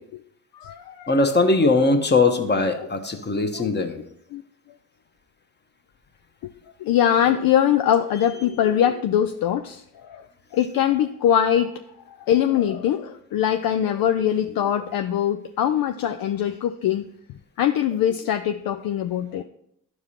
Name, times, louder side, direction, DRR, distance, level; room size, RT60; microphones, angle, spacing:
voice 1, 0.5-1.2 2.8-2.9 3.5-3.9 4.3-4.4 6.8-10.3 10.5-11.8 12.1-17.0 17.6-19.4, left 10 dB, 55° left, 0.5 m, -22 dB
voice 2, 1.1-4.0, left 3 dB, 25° left, 1.2 m, -20 dB
12.0 x 4.7 x 2.9 m
hypercardioid pair, 50°, 43 cm